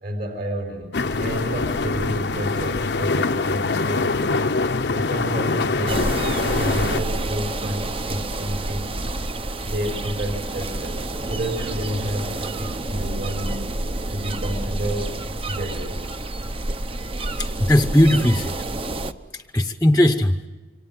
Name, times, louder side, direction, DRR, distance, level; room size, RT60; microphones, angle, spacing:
voice 1, 0.0-4.2 4.9-6.2 6.5-9.0 9.6-13.7 14.1-15.1 15.5-16.0, equal, 55° right, 2 dB, 4.5 m, -30 dB
sound 1, 0.9-7.0, left 3 dB, 70° left, 0.8 m, -24 dB
sound 2, 5.9-19.1, right 2 dB, 30° right, 0.8 m, -29 dB
voice 2, 17.4-18.5 19.3-20.5, left 1 dB, 10° left, 7 dB, 0.8 m, -18 dB
27.5 x 24.5 x 7.8 m, 1.2 s
head